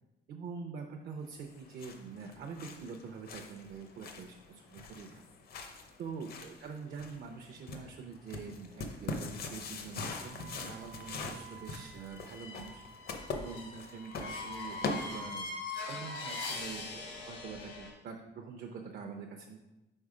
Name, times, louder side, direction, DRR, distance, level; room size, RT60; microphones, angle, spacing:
voice 1, 0.3-5.2 6.0-15.5 15.9-19.6, right 5 dB, 55° right, 3 dB, 0.6 m, -45 dB
sound 1, 1.4-15.6, left 3 dB, 55° left, 0.7 m, -43 dB
sound 2, 10.2-17.9, left 3 dB, 75° left, 1.2 m, -43 dB
5.4 x 4.2 x 4.8 m, 1.0 s
cardioid pair, 160°, 18 cm